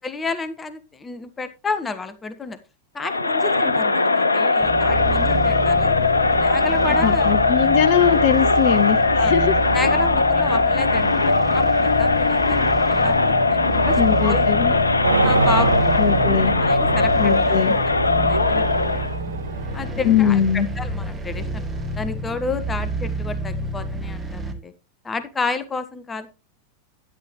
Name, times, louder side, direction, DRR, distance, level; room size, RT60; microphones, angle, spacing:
voice 1, 0.0-2.6 2.9-6.0 6.4-7.7 9.2-9.3 9.7-14.4 15.2-16.2 16.6-17.8 18.1-19.2 19.7-21.6 22.0-24.7 25.0-26.3, left 4 dB, 15° left, 11 dB, 1.3 m, -31 dB
Crowd, 3.0-19.2, left 3 dB, 80° left, 0.9 m, -19 dB
sound 1, 4.6-24.5, right 2 dB, 15° right, 2.3 m, -29 dB
voice 2, 7.0-9.5 14.0-14.7 16.0-16.5 17.2-17.8 20.0-20.7, left 9 dB, 50° left, 16 dB, 1.0 m, -20 dB
sound 2, 15.0-21.9, right 3 dB, 75° right, 1.2 m, -26 dB
12.0 x 11.5 x 3.1 m, 0.28 s
figure-of-eight pair, 90°, 0 cm